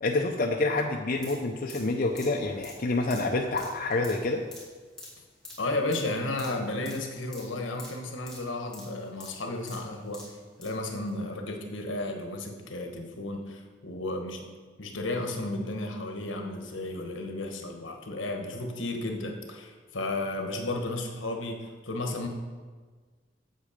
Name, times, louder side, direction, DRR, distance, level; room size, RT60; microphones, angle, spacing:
voice 1, 0.0-4.4, left 2 dB, 45° left, 1 dB, 0.6 m, -27 dB
sound 1, 1.1-10.8 11.1-11.2, left 2 dB, 5° left, 2.5 m, -48 dB
voice 2, 5.6-10.2 10.6-14.5 14.8-21.6 21.8-22.3, left 2 dB, 75° left, 3 dB, 1.2 m, -33 dB
8.2 x 7.5 x 5.1 m, 1.5 s
head